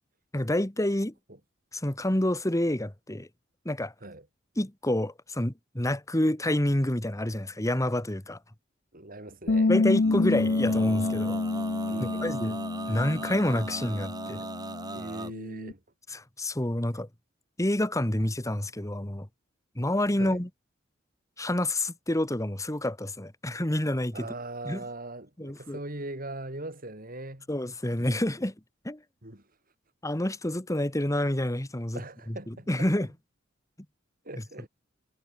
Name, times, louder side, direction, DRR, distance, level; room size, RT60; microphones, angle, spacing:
voice 1, 0.3-1.1 1.7-3.3 3.6-3.9 4.6-8.4 9.7-11.4 12.0-12.6 12.9-14.5 16.1-17.1 17.6-19.3 19.7-20.5 21.4-24.3 24.6-24.8 25.4-25.8 27.5-28.5 28.8-29.0 30.0-32.0 32.3-33.1, left 1 dB, 15° left, 1.7 m, -28 dB
voice 2, 8.9-9.7 11.9-12.4 14.9-15.8 20.2-20.4 24.1-27.5 29.2-29.4 31.9-32.9 34.2-34.7, right 2 dB, 45° right, 7.8 m, -40 dB
Bass guitar, 9.5-15.7, left 3 dB, 55° left, 0.7 m, -28 dB
Male singing, 10.0-15.3, right 2 dB, 20° right, 1.8 m, -38 dB
head